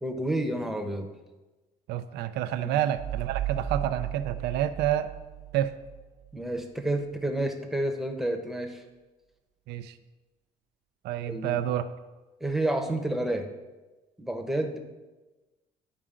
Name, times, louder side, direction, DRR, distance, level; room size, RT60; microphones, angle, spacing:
voice 1, 0.0-1.1 2.6-2.8 6.3-8.8 11.3-11.6 12.4-13.4 14.2-14.8, right 1 dB, ahead, 4 dB, 0.9 m, -30 dB
voice 2, 1.9-5.1 5.5-5.7 9.7-10.0 11.0-11.9, right 11 dB, 80° right, 10 dB, 0.5 m, -28 dB
sound 1, 3.0-6.3, right 11 dB, 55° right, 0.9 m, -35 dB
11.0 x 4.8 x 3.7 m, 1.2 s
cardioid pair, 110°, 17 cm